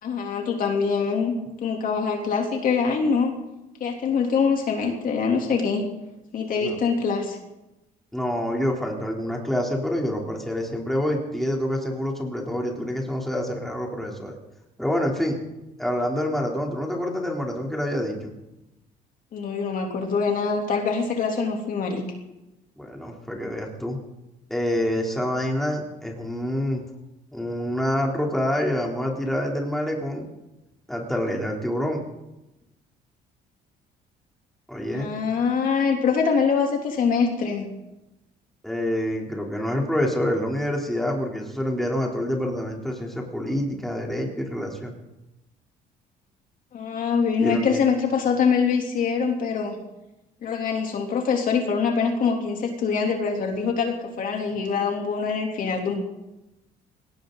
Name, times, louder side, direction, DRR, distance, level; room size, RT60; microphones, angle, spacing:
voice 1, 0.0-1.3 1.6-3.3 3.8-5.9 6.3-7.4 19.3-22.0 34.9-37.7 46.7-49.8 50.4-56.0, left 5 dB, 55° left, 2 dB, 3.1 m, -24 dB
voice 2, 8.1-14.4 14.8-15.4 15.8-18.3 22.8-24.0 24.5-26.8 27.3-30.3 30.9-32.0 34.7-35.1 38.6-44.9 47.4-47.8, left 1 dB, ahead, -1 dB, 3.4 m, -27 dB
20.0 x 18.0 x 4.0 m, 0.96 s
cardioid pair, 110°, 17 cm